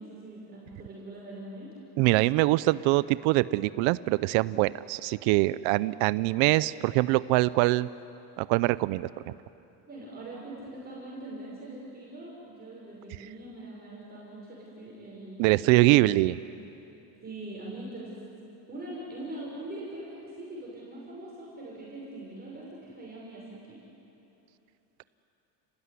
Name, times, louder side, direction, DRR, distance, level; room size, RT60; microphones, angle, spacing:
voice 1, 0.0-1.7 9.8-16.3 17.2-18.1 18.7-23.8, right 1 dB, 20° right, -5 dB, 5.8 m, -42 dB
voice 2, 2.0-7.9 8.4-9.3 15.4-16.4, right 19 dB, 80° right, 17 dB, 0.7 m, -23 dB
30.0 x 18.5 x 9.7 m, 2.9 s
cardioid pair, 160°, 46 cm